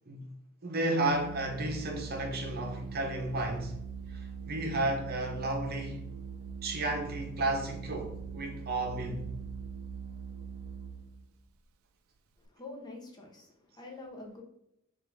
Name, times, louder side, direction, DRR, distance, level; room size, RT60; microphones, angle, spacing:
voice 1, 0.6-3.7 4.1-6.0 6.6-9.3, right 2 dB, 45° right, 0.8 m, -32 dB
Organ, 0.9-11.3, right 6 dB, 75° right, 0.4 m, -42 dB
voice 2, 12.4-14.4, left 2 dB, 20° left, 0.7 m, -46 dB
3.6 x 2.5 x 4.6 m
head